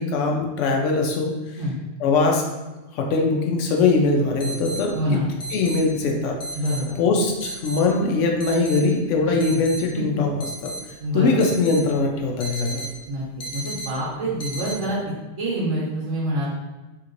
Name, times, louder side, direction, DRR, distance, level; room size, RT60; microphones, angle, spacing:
voice 1, 0.0-1.3 2.0-2.4 3.0-5.2 5.5-6.4 7.0-10.3 10.6-10.7 11.1-12.8, left 3 dB, 80° left, 1 dB, 0.9 m, -21 dB
sound 1, 3.8-3.9 4.4-4.8 5.4-5.8 6.4-6.8 7.4-7.8 8.4-8.8 9.4-9.8 10.4-10.8 11.4-11.8 12.4-13.0 13.4-13.9 14.4-14.7, right 1 dB, 55° left, 0.5 m, -33 dB
voice 2, 4.9-5.3 6.6-7.0 9.3-9.6 9.9-10.0 11.0-11.5 13.1-13.2 13.5-16.5, equal, 80° right, -8 dB, 1.1 m, -26 dB
2.9 x 2.9 x 2.5 m, 1.1 s
omnidirectional pair, 1.3 m